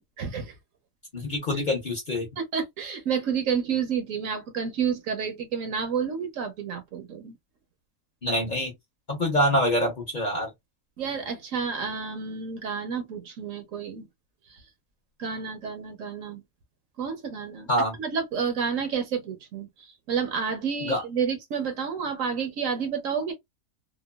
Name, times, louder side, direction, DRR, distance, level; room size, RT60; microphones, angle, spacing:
voice 1, 0.2-0.5 2.4-7.4 11.0-14.1 14.5-14.6 15.2-16.4 17.0-17.7 18.0-23.3, right 6 dB, 65° right, 1.0 m, -30 dB
voice 2, 1.1-2.3 8.2-8.7 9.1-10.5 17.7-18.0 20.8-21.0, equal, 40° left, 0.8 m, -25 dB
2.9 x 2.2 x 2.2 m
omnidirectional pair, 1.6 m